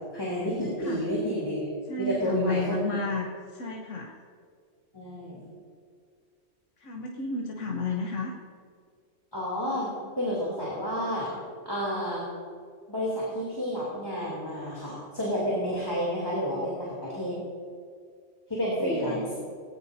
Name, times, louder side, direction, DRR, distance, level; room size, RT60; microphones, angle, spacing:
voice 1, 0.1-1.7 2.0-3.0 4.9-5.5 9.3-9.9 10.2-11.3 11.6-12.2 12.9-17.3 18.5-19.3, equal, 20° left, -6 dB, 3.1 m, -30 dB
voice 2, 0.6-1.0 1.9-3.3 3.5-4.1 6.8-8.3 18.8-19.3, left 3 dB, 70° left, 0 dB, 1.4 m, -32 dB
19.0 x 17.5 x 2.8 m, 2.2 s
omnidirectional pair, 1.3 m